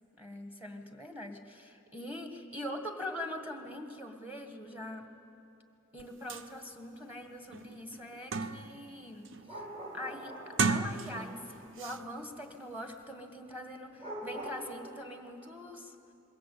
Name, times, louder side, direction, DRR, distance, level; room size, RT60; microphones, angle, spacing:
voice 1, 0.1-5.1 5.9-9.6 9.9-15.9, left 1 dB, 10° right, 5 dB, 1.8 m, -43 dB
sound 1, 6.0-6.1 6.3-6.5 7.0-7.1 7.5-8.8 9.2-9.6 10.4-11.4 11.8-12.0, right 4 dB, 60° right, 0.8 m, -34 dB
sound 2, 9.5-11.5 14.0-14.6, right 1 dB, 30° right, 4.7 m, -43 dB
27.5 x 22.0 x 8.6 m, 2.7 s
head